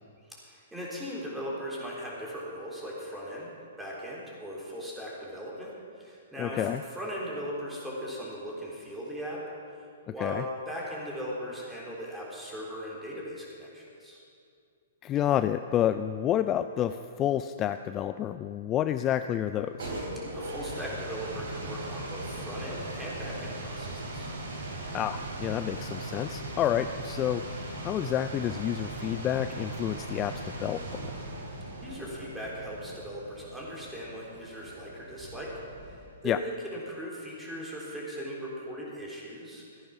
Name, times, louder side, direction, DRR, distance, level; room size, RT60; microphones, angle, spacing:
voice 1, 0.3-3.5 3.8-9.4 9.8-14.2 20.3-24.3 31.8-35.5 35.8-39.9, equal, 5° right, -4 dB, 3.7 m, -39 dB
voice 2, 6.4-6.8 10.2-10.4 15.0-19.9 24.9-27.4 27.8-31.1 36.2-36.4, left 11 dB, 25° left, 11 dB, 0.3 m, -29 dB
sound 1, 19.5-36.2, right 2 dB, 70° right, 3.2 m, -39 dB
14.5 x 10.0 x 6.0 m, 2.4 s
hypercardioid pair, 125°, 0 cm